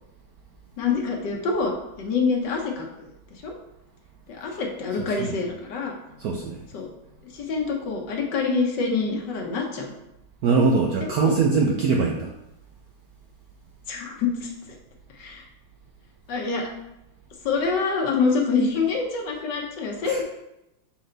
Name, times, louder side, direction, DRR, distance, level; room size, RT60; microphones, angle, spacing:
voice 1, 0.8-2.9 3.4-3.5 4.3-5.9 6.7-6.9 7.2-9.9 11.0-11.3 13.9-14.5 15.1-15.4 16.3-16.7 17.4-20.2, left 4 dB, 65° left, 1 dB, 1.5 m, -26 dB
voice 2, 5.0-5.4 6.2-6.6 10.4-12.3 20.0-20.2, right 4 dB, 75° right, 1 dB, 0.8 m, -22 dB
6.2 x 4.4 x 3.9 m, 0.88 s
omnidirectional pair, 2.1 m